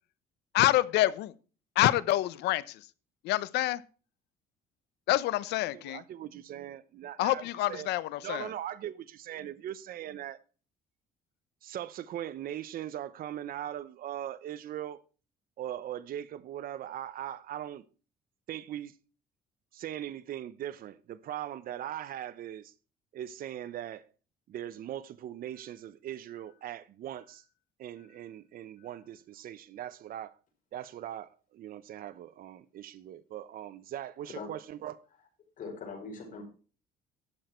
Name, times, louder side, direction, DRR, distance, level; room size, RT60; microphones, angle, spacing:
voice 1, 0.5-1.3 1.8-2.8 3.2-3.8 5.1-6.0 7.2-8.5, left 16 dB, 85° left, 0.8 m, -27 dB
voice 2, 5.7-7.9 8.2-10.4 11.6-15.0 15.6-17.8 18.5-18.9 19.7-22.7 23.1-24.1 24.5-27.4 27.8-30.3 30.7-35.0, right 11 dB, 60° right, 0.8 m, -40 dB
voice 3, 35.6-36.4, left 4 dB, 55° left, 5.3 m, -41 dB
12.0 x 8.0 x 4.4 m
cardioid pair, 110°, 17 cm